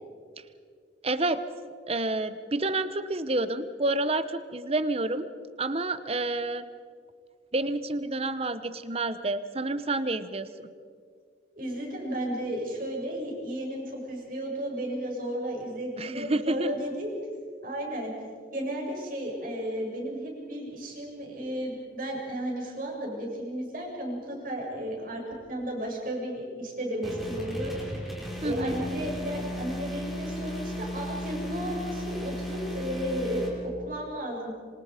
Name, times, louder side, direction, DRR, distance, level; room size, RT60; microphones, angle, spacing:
voice 1, 1.0-1.4 1.9-5.3 5.6-6.7 7.5-10.7 16.0-16.7 28.4-28.7, right 2 dB, 35° right, 12 dB, 1.0 m, -29 dB
voice 2, 11.5-17.1 17.6-18.1 18.5-27.7 28.4-34.5, equal, 50° right, -1 dB, 6.8 m, -33 dB
sound 1, 27.0-33.5, equal, ahead, 5.0 m, -35 dB
27.0 x 26.5 x 5.1 m, 2.1 s
head